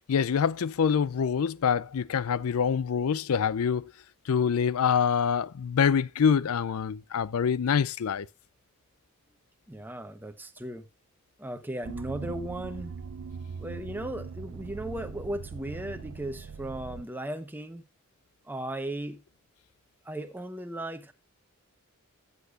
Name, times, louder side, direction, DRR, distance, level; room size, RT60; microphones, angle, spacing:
voice 1, 0.1-3.9 4.3-8.3, left 7 dB, 75° left, 0.4 m, -25 dB
voice 2, 9.7-10.8 11.4-12.9 13.6-17.8 18.5-19.2 20.0-21.1, right 1 dB, 10° right, 0.9 m, -36 dB
sound 1, 11.8-17.0, right 5 dB, 80° right, 0.4 m, -40 dB
13.5 x 8.2 x 2.4 m
head